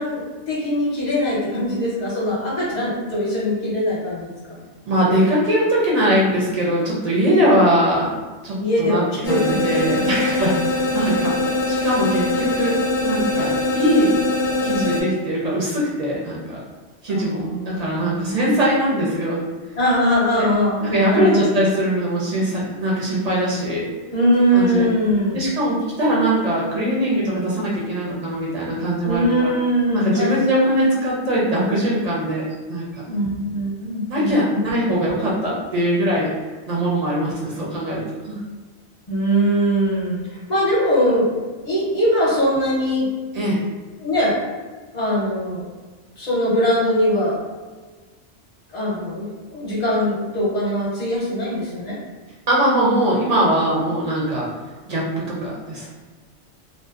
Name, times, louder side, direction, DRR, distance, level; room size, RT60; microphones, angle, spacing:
voice 1, 0.0-4.6 8.6-10.2 17.1-18.7 19.8-21.4 24.1-25.5 29.0-30.3 30.8-30.9 33.0-34.6 39.1-41.3 41.6-43.1 44.0-44.4 44.9-45.7 46.2-47.4 48.7-52.0, equal, 40° left, -7 dB, 0.9 m, -21 dB
voice 2, 4.8-8.1 8.4-12.7 13.0-14.1 14.6-16.6 17.0-19.4 20.3-20.4 20.8-23.8 24.5-24.9 25.3-29.5 29.9-33.0 34.1-36.3 36.7-38.4 43.3-43.6 52.5-54.5 54.8-55.9, right 1 dB, 50° right, -5 dB, 0.5 m, -21 dB
sound 1, 9.2-15.0, left 2 dB, 75° left, 0.8 m, -22 dB
2.6 x 2.1 x 2.3 m, 1.3 s
omnidirectional pair, 1.2 m